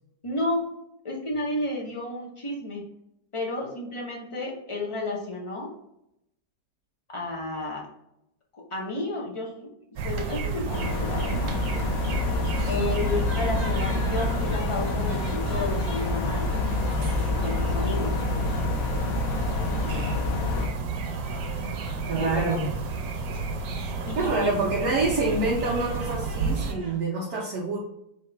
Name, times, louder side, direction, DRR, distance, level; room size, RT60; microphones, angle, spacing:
voice 1, 0.2-0.7 1.0-2.8 3.3-5.7 7.1-7.9 8.7-9.7 10.0-11.6 12.6-16.5 17.1-18.1 22.2-22.6 24.0-24.6, left 2 dB, 45° left, -2 dB, 0.4 m, -32 dB
sound 1, 10.0-26.7, right 4 dB, 85° right, 1.4 m, -31 dB
sound 2, 10.7-20.7, left 3 dB, 70° left, 0.8 m, -28 dB
sound 3, 13.0-27.0, right 1 dB, 15° right, 1.1 m, -45 dB
voice 2, 19.8-20.1 22.1-22.7 24.2-27.8, right 3 dB, 60° right, -3 dB, 1.2 m, -27 dB
3.7 x 3.7 x 3.4 m, 0.79 s
omnidirectional pair, 2.0 m